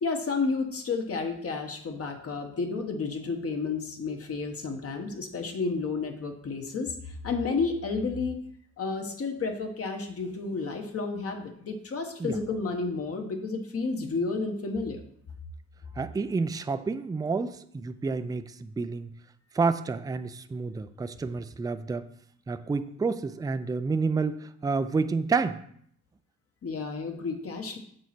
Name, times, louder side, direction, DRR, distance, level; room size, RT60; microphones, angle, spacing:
voice 1, 0.0-8.4 8.8-15.0 26.6-27.8, left 4 dB, 50° left, 4 dB, 1.4 m, -31 dB
voice 2, 16.0-19.1 19.5-22.1 22.5-25.6, right 4 dB, 15° right, 11 dB, 0.4 m, -29 dB
7.2 x 4.1 x 6.0 m, 0.65 s
cardioid pair, 90°, 30 cm